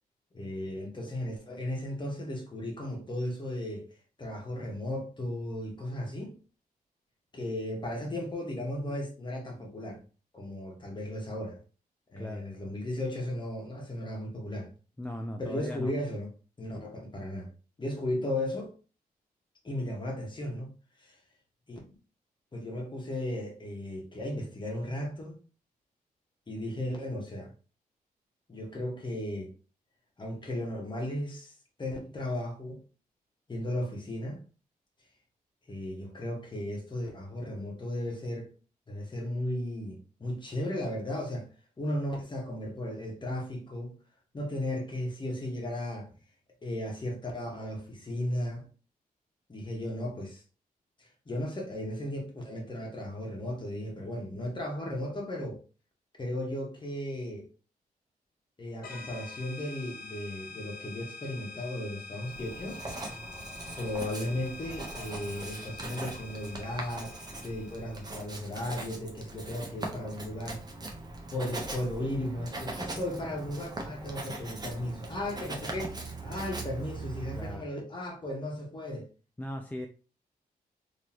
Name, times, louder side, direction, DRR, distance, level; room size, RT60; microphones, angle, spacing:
voice 1, 0.3-3.9 4.2-6.4 7.3-10.0 10.3-11.6 12.1-14.7 15.4-16.3 16.6-17.5 17.8-18.7 19.6-20.7 21.0-21.2 21.7-22.0 22.5-25.4 26.5-27.5 28.5-29.5 30.2-31.5 31.8-32.8 33.5-34.4 35.7-38.5 38.9-41.5 41.8-44.0 44.3-46.1 46.6-48.7 49.5-50.4 51.0-55.6 56.2-57.5 58.6-62.8 63.8-67.2 67.4-70.6 71.3-79.1, left 1 dB, 30° left, 1.5 m, -35 dB
voice 2, 12.2-12.5 15.0-15.9 77.3-77.7 79.4-79.9, left 1 dB, 10° left, 0.5 m, -38 dB
sound 1, 58.8-68.2, left 3 dB, 75° left, 0.8 m, -46 dB
Writing, 62.2-77.6, right 2 dB, 25° right, 1.0 m, -41 dB
3.8 x 3.2 x 3.0 m
cardioid pair, 95°, 15 cm